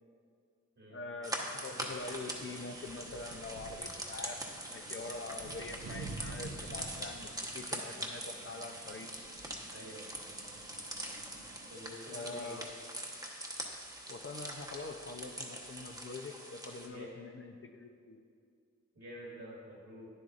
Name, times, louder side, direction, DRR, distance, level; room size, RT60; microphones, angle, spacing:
voice 1, 0.9-4.4 4.7-9.1 12.1-12.7 14.1-18.2, left 3 dB, 45° left, 5 dB, 0.5 m, -44 dB
sound 1, 1.2-16.9, right 1 dB, 10° right, 1.0 m, -43 dB
Wind, 1.7-11.7, right 3 dB, 80° right, 0.8 m, -50 dB
voice 2, 9.7-10.1 11.7-12.6 16.9-17.1 18.9-20.1, equal, 55° right, -4 dB, 1.9 m, -48 dB
9.5 x 7.8 x 2.5 m, 2.3 s
cardioid pair, 50°, 31 cm